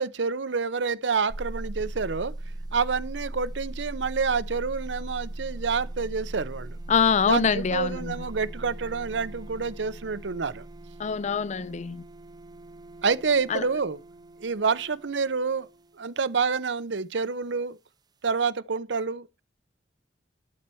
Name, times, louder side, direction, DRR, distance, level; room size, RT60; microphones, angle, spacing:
voice 1, 0.0-2.3 2.7-6.8 7.3-10.6 13.0-14.0 14.4-15.7 16.0-17.8 18.2-19.4, right 5 dB, 85° right, 0.7 m, -28 dB
sound 1, 1.3-15.8, right 1 dB, 25° right, 0.6 m, -39 dB
voice 2, 6.9-8.3 11.0-12.0 13.5-13.6, left 6 dB, 40° left, 0.4 m, -24 dB
12.0 x 4.4 x 6.9 m
head